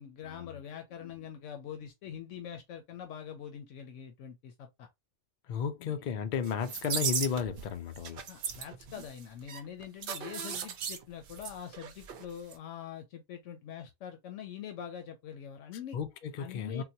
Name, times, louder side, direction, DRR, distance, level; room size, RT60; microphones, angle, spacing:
voice 1, 0.0-4.9 5.8-6.1 8.3-16.0 16.4-16.8, left 9 dB, 85° left, 0.9 m, -44 dB
voice 2, 5.5-8.2 15.9-16.8, left 7 dB, 55° left, 0.5 m, -34 dB
sound 1, 6.4-7.7 8.0-12.3 12.5-12.6, right 7 dB, 60° right, 0.6 m, -37 dB
3.9 x 2.1 x 2.7 m
omnidirectional pair, 1.2 m